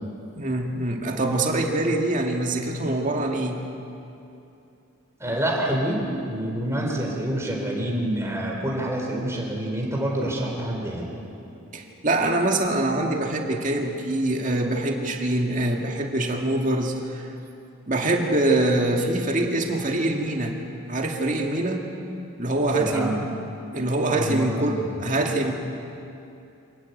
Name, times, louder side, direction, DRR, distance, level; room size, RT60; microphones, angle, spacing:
voice 1, 0.3-3.6 11.7-17.3 17.9-20.6 20.9-21.9 22.4-23.2 23.7-25.5, right 2 dB, 40° right, 2 dB, 2.0 m, -24 dB
voice 2, 5.2-11.2 22.7-23.3 24.1-24.9, right 1 dB, 15° right, -1 dB, 3.8 m, -27 dB
26.5 x 12.5 x 9.3 m, 2.7 s
head